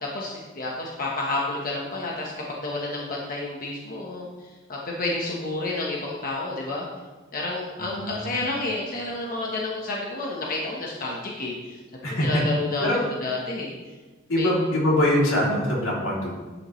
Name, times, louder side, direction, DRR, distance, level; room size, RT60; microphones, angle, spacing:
voice 1, 0.0-6.9 7.3-11.8 12.0-13.7 14.4-14.5, left 2 dB, 45° left, -3 dB, 1.2 m, -30 dB
voice 2, 7.8-8.4 12.0-12.4 12.8-13.0 14.3-16.4, left 1 dB, 85° left, -5 dB, 3.1 m, -23 dB
11.0 x 8.6 x 3.2 m, 1.3 s
head